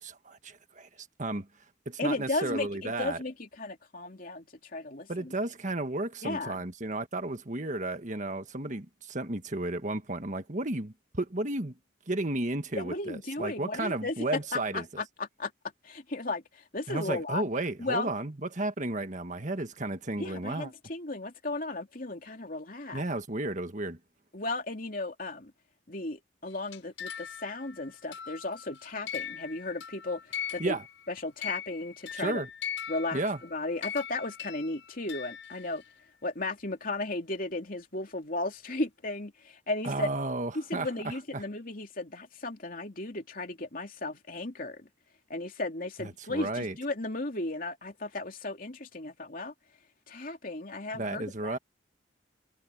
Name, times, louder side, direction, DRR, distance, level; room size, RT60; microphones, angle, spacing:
voice 1, 0.0-0.9 1.2-1.5 1.8-3.2 5.1-11.8 12.1-15.0 16.9-20.7 22.9-24.0 30.6-30.8 32.2-32.5 33.1-33.4 39.8-40.9 41.3-41.4 46.0-46.7 50.9-51.6, right 2 dB, 40° right, 1.6 m, -33 dB
voice 2, 2.0-4.5 4.7-5.3 6.2-6.6 12.8-15.5 15.8-17.5 17.8-18.1 20.2-23.0 24.3-25.5 25.9-30.8 31.1-32.4 32.9-35.8 36.2-40.1 40.5-44.9 45.3-49.5 50.1-51.6, left 2 dB, 45° left, 3.1 m, -35 dB
sound 1, 26.5-31.1 31.4-35.9, left 8 dB, 80° left, 6.4 m, -40 dB
head